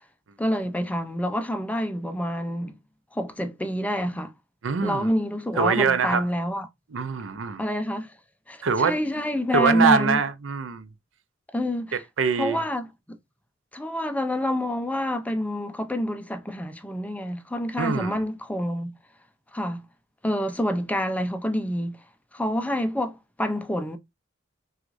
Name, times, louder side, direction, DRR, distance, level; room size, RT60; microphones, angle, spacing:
voice 1, 0.4-2.8 3.1-4.3 4.8-6.7 7.6-8.1 8.5-10.2 11.5-12.0 12.4-13.2 13.7-18.9 19.5-19.8 20.2-21.9 22.3-24.0, equal, 10° left, 0.5 m, -27 dB
voice 2, 4.6-5.1 5.6-6.3 6.9-7.6 8.6-9.0 9.5-10.9 12.2-12.6 17.8-18.2, right 5 dB, 80° right, 0.6 m, -23 dB
6.0 x 2.4 x 2.5 m
head